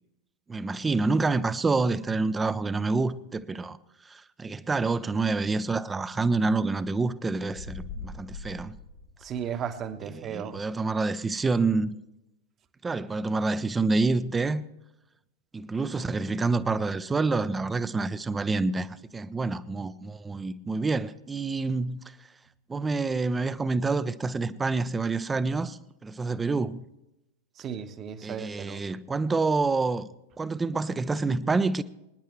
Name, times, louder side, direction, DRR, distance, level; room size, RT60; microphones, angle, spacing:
voice 1, 0.5-3.8 4.1-8.7 10.2-12.0 12.8-14.6 15.5-22.0 22.7-26.8 28.2-30.1 30.4-31.8, right 3 dB, 15° right, 0.6 m, -27 dB
sound 1, 7.5-9.8, left 4 dB, 65° left, 2.4 m, -41 dB
voice 2, 9.2-10.6 27.6-28.8, right 8 dB, 30° right, 1.1 m, -35 dB
26.0 x 10.0 x 3.2 m
figure-of-eight pair, 90°, 0 cm